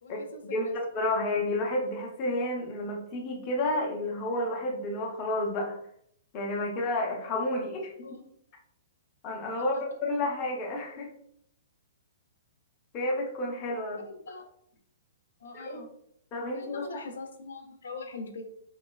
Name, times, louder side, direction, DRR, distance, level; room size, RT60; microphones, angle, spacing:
voice 1, 0.0-0.8 8.0-8.2 9.7-9.8 14.0-14.5 15.4-15.9 16.5-18.4, left 3 dB, 90° left, 4 dB, 0.4 m, -42 dB
voice 2, 0.9-5.8 6.3-8.1 9.2-11.1 12.9-14.0 15.5-15.8 16.3-16.9, left 1 dB, 25° left, 0 dB, 0.5 m, -30 dB
3.0 x 2.3 x 2.2 m, 0.69 s
hypercardioid pair, 165°, 0 cm